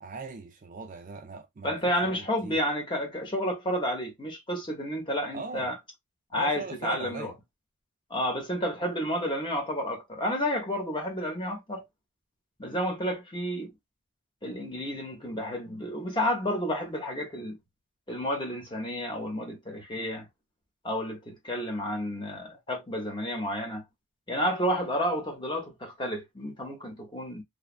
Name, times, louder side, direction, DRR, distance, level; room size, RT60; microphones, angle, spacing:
voice 1, 0.0-2.7 5.3-5.7 6.3-7.3 20.0-20.1, right 4 dB, 35° right, 0.4 m, -40 dB
voice 2, 1.6-5.7 6.3-7.3 8.1-11.8 12.6-13.7 14.4-17.6 18.1-20.3 20.8-23.8 24.3-27.4, equal, 20° left, 0.8 m, -31 dB
3.1 x 2.0 x 2.3 m
head